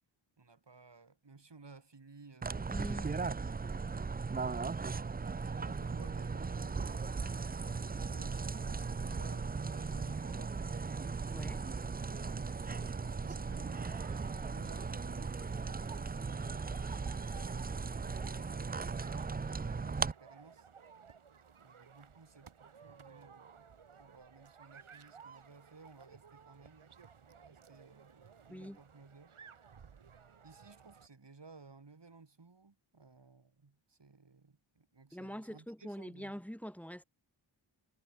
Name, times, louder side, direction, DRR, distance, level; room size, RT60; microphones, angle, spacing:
voice 1, 0.4-3.2 4.4-6.9 7.7-10.9 12.1-13.9 14.5-19.0 19.6-20.7 21.6-29.4 30.4-36.4, right 4 dB, 60° right, 4.1 m, -58 dB
sound 1, 2.4-20.1, right 4 dB, 20° right, 0.4 m, -37 dB
voice 2, 2.7-3.1 11.3-11.6 28.5-28.8 35.1-37.0, equal, 5° left, 2.4 m, -44 dB
sound 2, 12.6-31.1, right 6 dB, 90° right, 1.7 m, -57 dB
wide cardioid pair, 60°, 48 cm